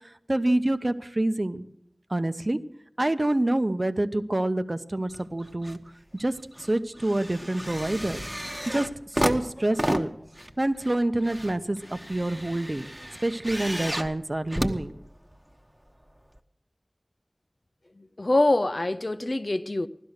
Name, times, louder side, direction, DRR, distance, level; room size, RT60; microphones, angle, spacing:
voice 1, 0.3-1.7 2.1-2.6 3.0-5.8 6.2-6.4 6.7-8.2 8.7-10.1 10.6-12.9 13.2-14.9, right 1 dB, 45° right, 0.9 m, -27 dB
sound 1, 5.1-5.8 6.2-15.6 16.3-16.4, equal, 15° right, 1.1 m, -33 dB
voice 2, 18.0-19.9, left 2 dB, 60° left, 0.6 m, -25 dB
16.5 x 12.0 x 6.5 m
wide cardioid pair, 45°, 0 cm